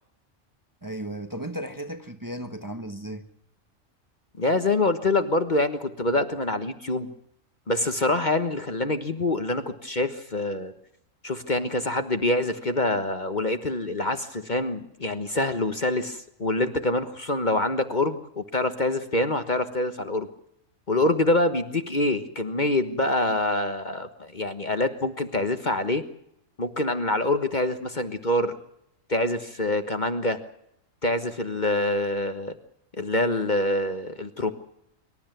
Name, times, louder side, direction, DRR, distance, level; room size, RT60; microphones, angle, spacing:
voice 1, 0.8-3.3, right 1 dB, 15° right, 1.4 m, -35 dB
voice 2, 4.4-7.1 7.7-10.7 11.2-20.3 20.9-26.0 26.6-28.6 29.1-30.4 31.0-32.5 33.0-34.5, left 2 dB, 35° left, 1.4 m, -25 dB
25.5 x 13.0 x 9.1 m
omnidirectional pair, 1.4 m